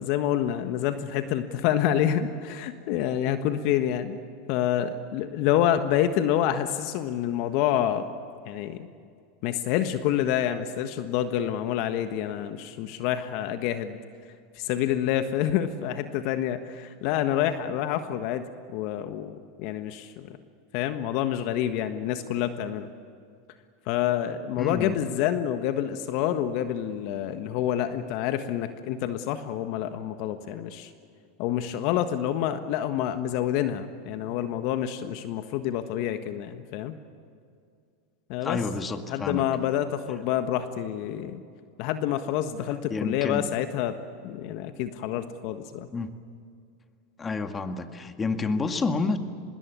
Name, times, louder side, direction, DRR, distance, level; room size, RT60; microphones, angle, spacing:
voice 1, 0.0-4.2 4.5-8.1 8.5-8.9 9.4-14.0 14.5-20.4 20.7-22.9 23.9-30.9 31.4-37.0 38.3-38.6 39.1-41.4 41.8-43.9 44.2-45.9, left 11 dB, 60° left, 9 dB, 1.5 m, -27 dB
voice 2, 24.6-25.0 38.4-39.4 42.9-43.5 45.9-46.1 47.2-49.2, left 4 dB, 20° left, 7 dB, 2.0 m, -29 dB
24.5 x 21.5 x 8.4 m, 2.3 s
hypercardioid pair, 100°, 0 cm